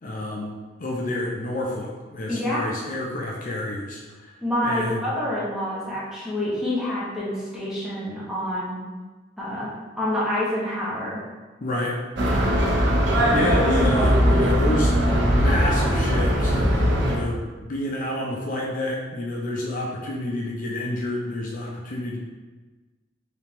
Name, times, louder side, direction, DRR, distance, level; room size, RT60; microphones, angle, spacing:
voice 1, 0.0-4.3 4.6-5.1 11.6-12.0 13.3-22.2, left 1 dB, 45° left, -3 dB, 0.5 m, -29 dB
voice 2, 2.3-2.7 4.4-8.8 9.4-11.2, left 1 dB, 5° right, -8 dB, 1.0 m, -27 dB
sound 1, 12.2-17.2, equal, 65° right, 0.6 m, -20 dB
3.4 x 3.3 x 2.9 m, 1.3 s
head